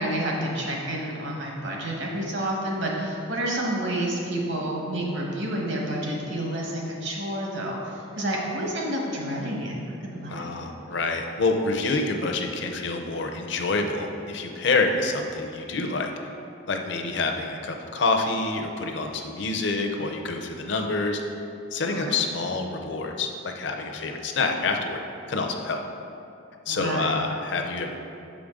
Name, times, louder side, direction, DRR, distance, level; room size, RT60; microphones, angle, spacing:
voice 1, 0.0-10.5 21.8-22.2 26.7-27.2, right 1 dB, 60° right, -1 dB, 1.1 m, -29 dB
voice 2, 10.3-16.1 16.7-21.2 21.7-25.0 25.3-25.8 26.7-28.0, left 3 dB, 60° left, 3 dB, 0.5 m, -27 dB
6.8 x 5.0 x 3.7 m, 2.7 s
head